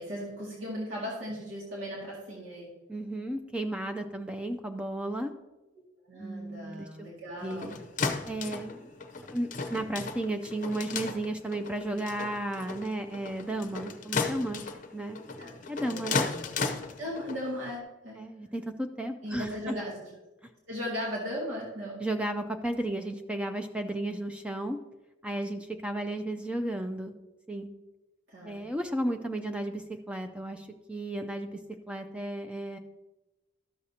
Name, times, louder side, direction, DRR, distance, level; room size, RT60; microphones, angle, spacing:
voice 1, 0.0-2.7 6.1-7.8 15.4-15.6 15.8-16.4 17.0-18.3 19.2-20.1 20.7-22.0 28.3-28.6, equal, 80° right, -4 dB, 2.1 m, -37 dB
voice 2, 2.9-5.3 6.2-7.1 7.4-7.8 8.3-8.8 9.2-14.7 14.9-15.2 15.7-16.3 18.2-19.8 20.4-20.5 22.0-24.8 25.2-27.1 27.5-27.7 28.4-31.6 31.9-32.8, right 1 dB, 5° right, 6 dB, 0.4 m, -34 dB
sound 1, 7.4-17.8, left 4 dB, 40° left, 0.6 m, -35 dB
13.0 x 6.4 x 2.8 m, 1.1 s
head